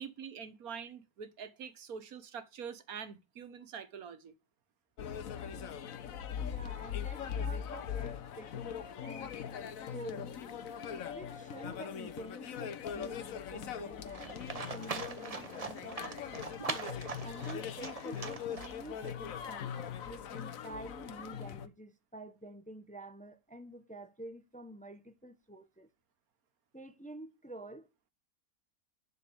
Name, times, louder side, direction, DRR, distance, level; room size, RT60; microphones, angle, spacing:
voice 1, 0.0-4.3, right 7 dB, 85° right, 1.6 m, -45 dB
sound 1, 5.0-21.7, left 8 dB, 70° left, 1.3 m, -41 dB
voice 2, 6.4-9.4 9.8-10.4 11.1-16.1 16.6-25.9 26.7-27.9, right 1 dB, 5° left, 0.8 m, -48 dB
Livestock farm animals working animals, 14.1-19.1, right 4 dB, 30° right, 0.9 m, -42 dB
11.0 x 4.4 x 7.0 m
omnidirectional pair, 1.5 m